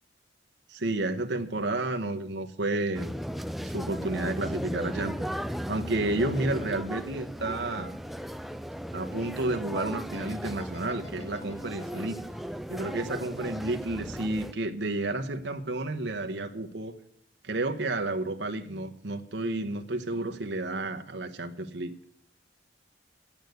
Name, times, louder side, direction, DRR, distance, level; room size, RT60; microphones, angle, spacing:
voice 1, 0.7-3.1 3.6-5.1 5.4-8.0 8.9-12.2 12.7-16.9 17.4-21.9, right 2 dB, 65° right, 5 dB, 1.1 m, -31 dB
sound 1, 2.9-14.5, equal, ahead, 0.4 m, -36 dB
sound 2, 10.1-13.9 14.2-15.1 15.4-15.6, left 3 dB, 90° left, 2.9 m, -51 dB
11.0 x 8.8 x 7.9 m, 0.68 s
head